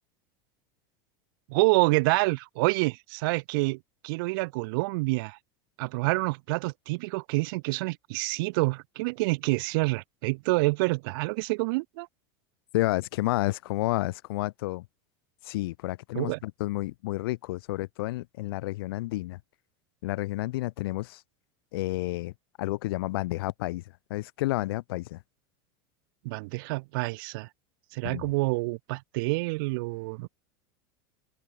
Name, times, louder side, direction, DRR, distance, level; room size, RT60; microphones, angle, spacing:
voice 1, 1.5-3.8 4.0-5.4 5.8-12.1 16.1-16.4 26.2-27.5 27.9-30.3, right 25 dB, 65° right, 3.3 m, -27 dB
voice 2, 12.7-14.9 15.4-19.4 20.0-21.2 21.7-22.3 22.6-23.8 24.1-25.2 28.0-28.2, left 19 dB, 75° left, 4.6 m, -30 dB
open air
supercardioid pair, 160°, 12 cm